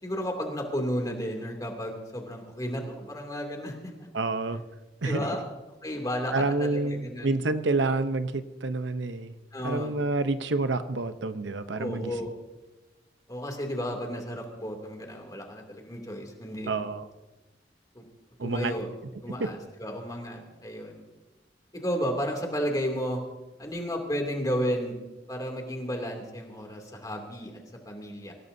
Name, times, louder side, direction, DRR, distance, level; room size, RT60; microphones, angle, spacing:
voice 1, 0.0-3.9 5.0-5.4 5.8-7.4 9.5-9.9 11.8-12.3 13.3-16.7 17.9-18.0 18.4-18.9 19.2-21.0 21.7-23.2 23.6-25.0 25.3-27.6 27.9-28.3, equal, 20° left, 2 dB, 2.7 m, -33 dB
voice 2, 4.1-4.6 5.0-5.3 6.3-9.3 9.6-12.1 16.7-17.1 18.4-18.7 19.4-19.5, right 3 dB, 85° right, 10 dB, 0.8 m, -28 dB
25.0 x 16.0 x 2.7 m, 1.1 s
head